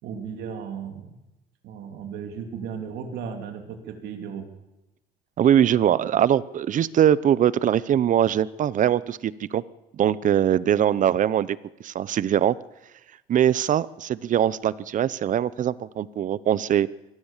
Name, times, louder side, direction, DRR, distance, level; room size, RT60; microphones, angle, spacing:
voice 1, 0.0-1.1 1.6-4.5, right 7 dB, 80° right, 4 dB, 2.9 m, -35 dB
voice 2, 5.4-9.6 9.9-11.6 11.8-12.5 13.3-16.9, right 10 dB, 50° right, 19 dB, 0.8 m, -22 dB
23.5 x 17.5 x 7.4 m, 0.98 s
cardioid pair, 110°, 17 cm